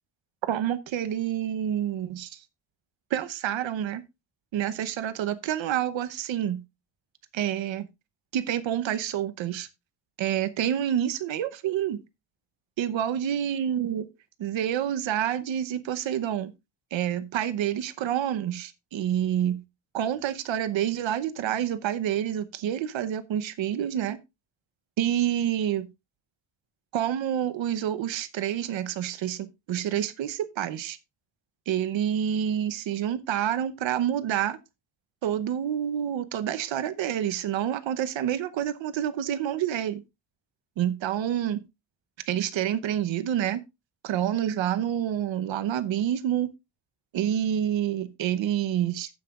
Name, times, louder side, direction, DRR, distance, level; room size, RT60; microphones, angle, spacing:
voice 1, 0.4-2.4 3.1-4.0 4.5-6.6 7.3-7.9 8.3-9.7 10.2-12.0 12.8-14.1 14.4-16.5 16.9-19.6 19.9-24.2 25.0-25.9 26.9-31.0 31.7-34.6 35.2-40.0 40.8-41.6 42.3-43.6 44.0-46.5 47.1-49.1, right 10 dB, 65° right, 0.9 m, -28 dB
14.5 x 7.7 x 2.4 m
cardioid pair, 160°, 49 cm